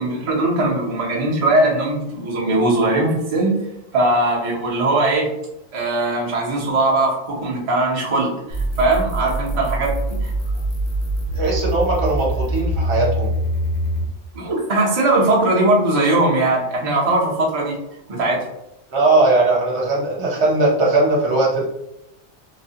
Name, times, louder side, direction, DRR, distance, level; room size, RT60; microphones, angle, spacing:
voice 1, 0.0-3.6 3.9-5.3 5.7-10.3 14.3-17.7 18.1-18.5, right 2 dB, 35° right, -3 dB, 0.6 m, -20 dB
sound 1, 8.5-14.1, right 1 dB, 65° left, 0.9 m, -23 dB
voice 2, 11.3-13.3 18.9-21.7, right 2 dB, 60° right, -4 dB, 1.1 m, -19 dB
4.0 x 2.1 x 2.7 m, 0.86 s
omnidirectional pair, 1.4 m